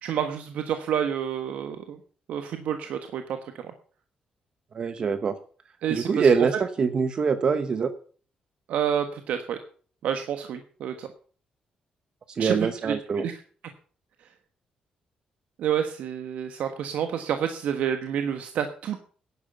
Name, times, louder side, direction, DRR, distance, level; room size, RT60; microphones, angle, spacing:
voice 1, 0.0-2.0 2.3-3.7 5.8-6.5 8.7-9.6 10.0-11.1 12.4-12.5 12.8-13.4 15.6-19.0, right 9 dB, 80° right, 7 dB, 1.4 m, -29 dB
voice 2, 4.7-5.3 5.9-7.9 12.3-13.3, right 5 dB, 40° right, 11 dB, 0.9 m, -24 dB
11.0 x 10.5 x 6.9 m, 0.43 s
cardioid pair, 160°, 2 cm